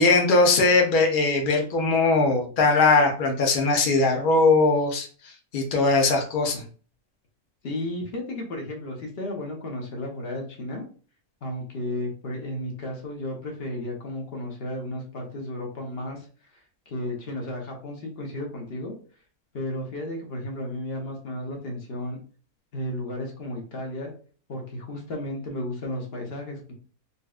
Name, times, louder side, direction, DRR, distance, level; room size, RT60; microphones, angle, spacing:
voice 1, 0.0-5.1 5.5-6.6, left 3 dB, 90° left, 3 dB, 0.4 m, -20 dB
voice 2, 7.6-10.8 11.4-18.9 19.5-22.2 22.7-24.1 24.5-26.7, left 1 dB, 45° left, 1 dB, 0.9 m, -33 dB
4.1 x 2.3 x 2.4 m, 0.41 s
omnidirectional pair, 1.7 m